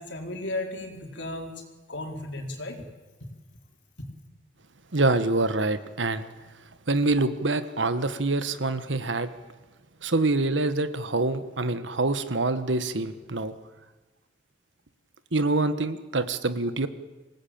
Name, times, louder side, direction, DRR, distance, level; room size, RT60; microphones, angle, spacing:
voice 1, 0.0-1.5 1.9-2.8, left 2 dB, 70° left, 3 dB, 4.2 m, -34 dB
voice 2, 4.9-6.3 6.9-9.3 10.0-13.5 15.3-16.9, right 2 dB, 85° right, 11 dB, 1.6 m, -25 dB
26.5 x 18.0 x 8.8 m, 1.2 s
head